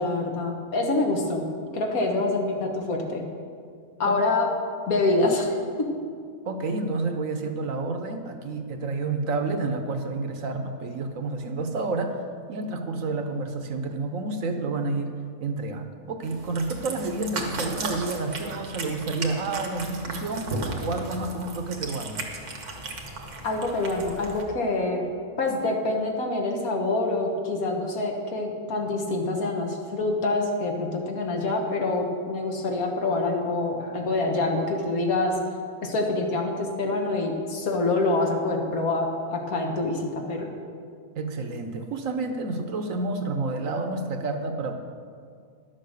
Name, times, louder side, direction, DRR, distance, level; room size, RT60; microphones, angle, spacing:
voice 1, 0.0-3.3 4.0-4.5 4.9-5.9 23.4-25.0 25.4-35.4 35.8-40.5, left 2 dB, 70° left, 2 dB, 1.8 m, -26 dB
voice 2, 6.4-12.2 12.5-15.1 15.4-20.5 20.8-22.2 41.2-44.8, right 3 dB, 65° right, 6 dB, 1.2 m, -29 dB
Cat, 16.2-24.4, right 3 dB, 90° right, 1.8 m, -35 dB
11.0 x 7.6 x 6.6 m, 2.2 s
omnidirectional pair, 1.6 m